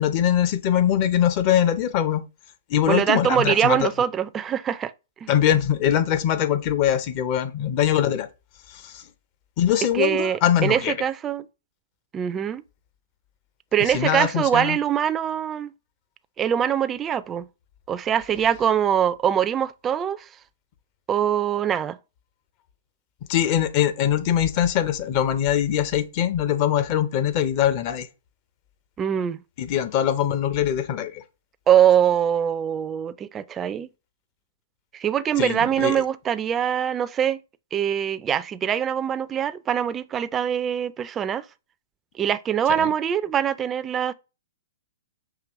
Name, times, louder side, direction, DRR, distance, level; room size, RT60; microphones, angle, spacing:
voice 1, 0.0-2.2 2.7-3.9 5.3-8.3 8.7-9.0 9.6-10.9 13.8-14.8 23.3-28.1 29.6-31.2 35.4-36.0 42.8-42.9, left 10 dB, 40° left, 0.6 m, -22 dB
voice 2, 2.9-4.9 5.2-5.3 9.9-11.4 12.1-12.6 13.7-15.7 16.4-17.5 17.9-20.3 21.1-22.0 29.0-29.4 31.7-33.9 34.9-37.4 37.7-41.4 42.2-44.1, right 9 dB, 20° right, 0.3 m, -23 dB
5.9 x 2.9 x 3.0 m
hypercardioid pair, 125°, 0 cm